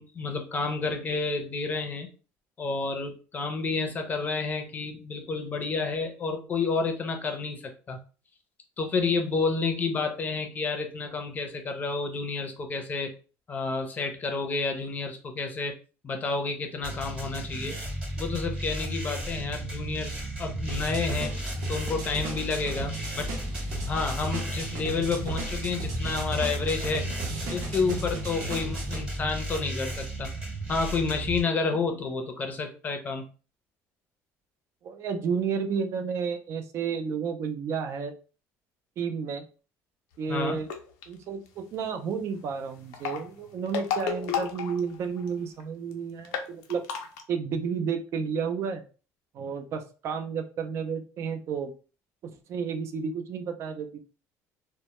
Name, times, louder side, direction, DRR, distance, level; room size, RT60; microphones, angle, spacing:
voice 1, 0.0-2.1 2.6-7.6 7.9-8.0 8.8-13.1 13.5-15.7 16.0-17.8 18.2-21.3 21.7-23.3 23.9-27.0 27.5-30.3 30.7-33.2 40.3-40.6, left 4 dB, 25° left, 4 dB, 0.5 m, -30 dB
sound 1, 16.8-31.4, right 1 dB, 15° right, 0.9 m, -34 dB
sound 2, 20.7-29.0, right 1 dB, 80° right, 0.7 m, -37 dB
voice 2, 34.8-38.1 39.0-39.4 40.2-40.7 41.1-46.8 47.3-48.8 49.3-51.7 52.2-54.0, right 6 dB, 45° right, 6 dB, 0.4 m, -31 dB
sound 3, 40.6-41.0 42.8-45.3 45.6-45.7 45.9-46.0 46.2-47.2, left 7 dB, 90° left, 0.5 m, -32 dB
2.1 x 2.1 x 2.9 m, 0.36 s
cardioid pair, 130°, 6 cm